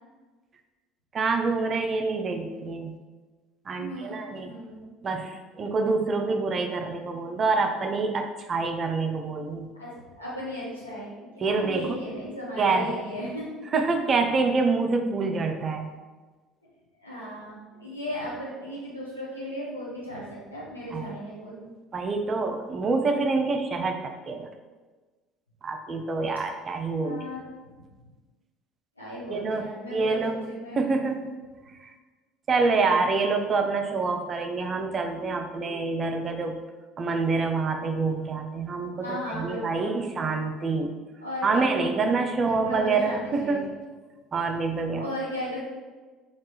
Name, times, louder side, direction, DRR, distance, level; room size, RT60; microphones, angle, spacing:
voice 1, 1.1-2.9 3.7-4.5 5.0-9.7 11.4-11.9 12.6-12.9 13.7-15.9 20.9-21.1 21.9-24.5 25.6-27.2 29.3-30.4 30.8-31.4 32.5-36.6 37.0-40.9 41.4-43.7 44.3-45.0, right 4 dB, 35° right, 5 dB, 0.3 m, -26 dB
voice 2, 3.7-4.9 9.8-13.5 17.0-21.6 27.0-27.4 29.0-30.8 39.0-40.0 41.2-41.6 42.4-43.7 44.9-45.7, equal, 90° left, -8 dB, 0.9 m, -36 dB
3.2 x 2.4 x 2.9 m, 1.3 s
figure-of-eight pair, 60°, 0 cm